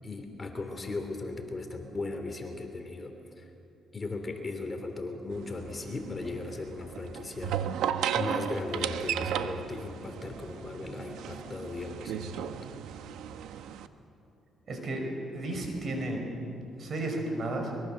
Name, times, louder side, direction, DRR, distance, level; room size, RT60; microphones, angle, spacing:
voice 1, 0.0-3.5 3.9-7.6 8.1-12.7, left 3 dB, 30° left, 5 dB, 2.9 m, -37 dB
sound 1, 5.3-13.9, right 9 dB, 85° right, 0.9 m, -35 dB
voice 2, 14.7-16.2 16.8-17.7, right 1 dB, 50° right, 3 dB, 5.5 m, -33 dB
23.5 x 22.0 x 6.6 m, 2.7 s
cardioid pair, 90°, 0 cm